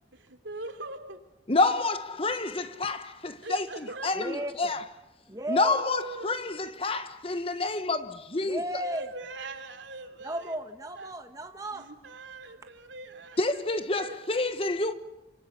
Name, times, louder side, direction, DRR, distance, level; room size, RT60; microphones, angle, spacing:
voice 1, 0.1-1.2 3.4-4.5 5.6-6.4 8.8-10.5 11.0-11.1 11.7-13.6 14.0-14.5, right 2 dB, 80° right, 3.1 m, -41 dB
voice 2, 1.5-4.8 5.5-8.8 13.4-14.9, left 3 dB, 30° left, 1.0 m, -28 dB
voice 3, 4.1-4.7 5.3-5.8 8.4-9.1 10.2-11.9, right 1 dB, 20° right, 1.3 m, -34 dB
28.0 x 25.5 x 7.0 m
head